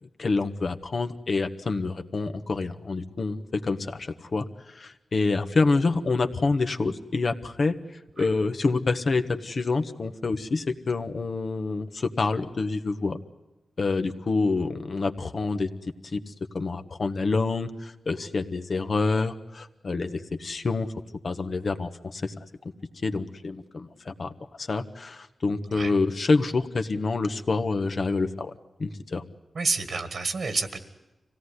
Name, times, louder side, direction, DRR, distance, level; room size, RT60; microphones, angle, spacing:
voice 1, 0.0-7.7 8.2-13.2 13.8-15.7 16.0-20.9 21.2-22.4 23.0-24.3 24.6-28.5 28.8-29.2, left 3 dB, 55° left, 8 dB, 1.3 m, -27 dB
voice 2, 29.6-30.8, right 4 dB, 65° right, 10 dB, 1.8 m, -29 dB
25.0 x 17.0 x 9.8 m, 1.0 s
wide cardioid pair, 95°, 0 cm